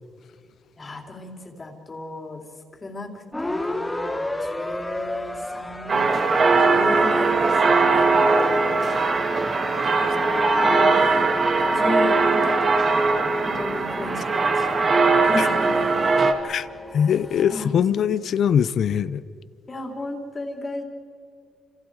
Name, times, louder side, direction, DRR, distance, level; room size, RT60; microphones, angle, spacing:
voice 1, 0.8-2.4 2.8-9.1 9.9-11.3 11.6-16.0 17.5-18.0 19.7-20.8, left 2 dB, 30° left, 3.7 m, -34 dB
sound 1, 3.3-17.7, left 1 dB, 10° left, 1.7 m, -32 dB
sound 2, 5.9-16.3, right 3 dB, 45° right, 2.1 m, -20 dB
voice 2, 16.9-19.2, left 8 dB, 65° left, 0.8 m, -22 dB
30.0 x 28.0 x 4.9 m
cardioid pair, 90°, 0 cm